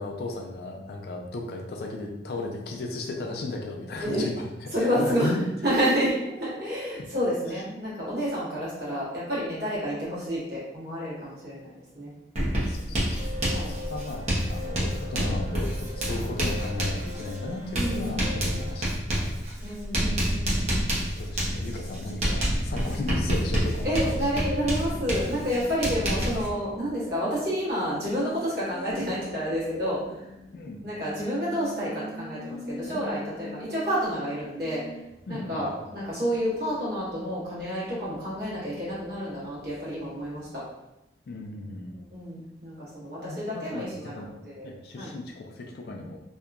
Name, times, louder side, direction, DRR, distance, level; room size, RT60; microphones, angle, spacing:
voice 1, 0.0-5.4 7.0-7.1 7.5-7.6 12.7-13.3 13.5-18.9 19.2-19.3 19.6-19.8 21.1-24.3 30.5-30.8 35.3-35.9 41.3-42.0 43.2-46.2, left 2 dB, 60° left, 2 dB, 0.4 m, -36 dB
voice 2, 4.7-5.3 5.6-6.1 6.4-12.1 13.2-13.9 16.1-16.2 17.7-18.3 19.6-20.9 22.9-23.0 23.8-30.0 30.8-34.8 35.3-40.6 42.1-44.7 45.0-45.1, equal, 60° right, -9 dB, 1.2 m, -29 dB
Writing, 12.3-26.5, equal, 40° right, 0.7 m, -28 dB
sound 1, 13.1-18.9, left 2 dB, 85° right, 1.0 m, -41 dB
Race car auto racing, 24.5-40.6, left 1 dB, 5° left, 0.9 m, -45 dB
2.8 x 2.1 x 2.4 m, 0.91 s
head